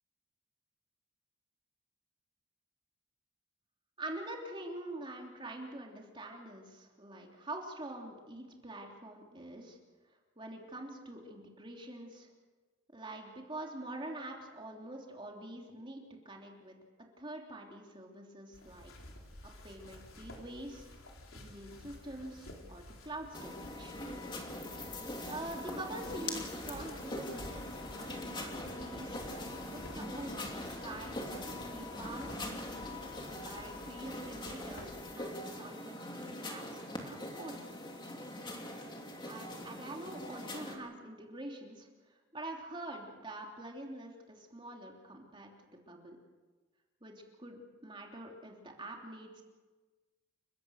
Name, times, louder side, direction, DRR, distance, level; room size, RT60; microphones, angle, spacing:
voice 1, 4.0-9.8 10.4-12.3 12.9-16.7 17.2-18.9 19.6-20.9 21.3-23.9 25.3-29.2 29.7-31.3 31.7-32.3 33.4-34.9 35.1-37.7 39.2-41.9 42.3-46.2 47.0-47.1 47.4-49.4, right 1 dB, 25° right, 0 dB, 3.3 m, -45 dB
sound 1, 18.5-35.0, left 1 dB, 85° left, 4.1 m, -52 dB
sound 2, 23.3-40.8, left 1 dB, 25° left, 2.9 m, -42 dB
30.0 x 16.0 x 6.5 m, 1.3 s
head